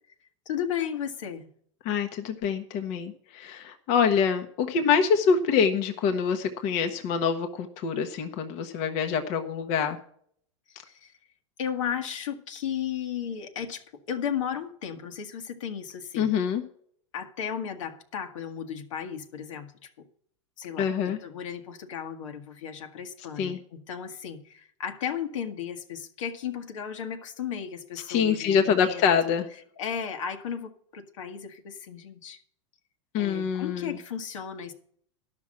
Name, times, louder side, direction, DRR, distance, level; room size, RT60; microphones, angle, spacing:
voice 1, 0.4-1.5 10.8-11.1 11.6-16.3 17.1-19.9 20.6-20.9 21.2-29.4 29.8-32.4 33.2-34.7, left 8 dB, 80° left, 6 dB, 1.6 m, -34 dB
voice 2, 1.8-10.0 16.2-16.6 20.8-21.2 23.4-23.6 28.1-29.5 33.1-34.0, left 6 dB, 50° left, 6 dB, 1.1 m, -25 dB
12.0 x 6.0 x 7.5 m, 0.62 s
supercardioid pair, 125°, 16 cm